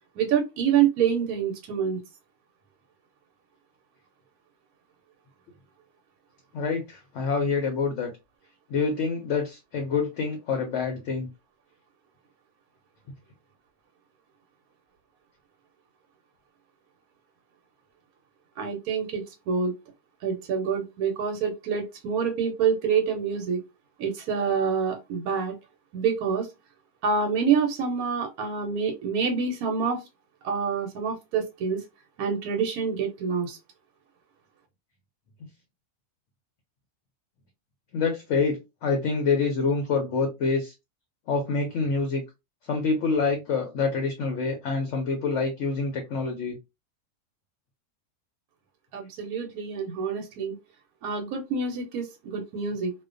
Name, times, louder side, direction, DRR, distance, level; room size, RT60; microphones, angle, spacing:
voice 1, 0.2-2.0 18.6-19.7 20.2-23.6 24.0-25.5 25.9-26.5 27.0-30.0 30.4-31.8 32.2-33.6 48.9-50.5 51.0-52.9, right 6 dB, 75° right, 1.0 m, -26 dB
voice 2, 6.5-8.1 8.7-11.3 37.9-40.7 41.3-42.2 42.7-46.6, left 4 dB, 65° left, 0.8 m, -26 dB
2.4 x 2.2 x 2.4 m
omnidirectional pair, 1.6 m